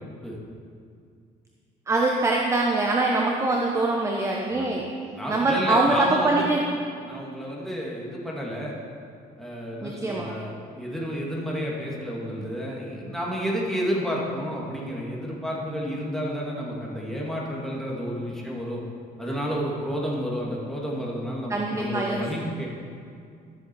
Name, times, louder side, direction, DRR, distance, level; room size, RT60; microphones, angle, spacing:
voice 1, 1.9-4.8 5.3-6.6 9.8-10.3 21.5-22.2, right 2 dB, 15° right, -1 dB, 0.9 m, -23 dB
voice 2, 5.1-6.5 7.0-8.7 9.4-18.8 19.2-22.7, equal, ahead, -4 dB, 2.2 m, -30 dB
13.0 x 7.6 x 4.6 m, 2.3 s
cardioid pair, 110°, 17 cm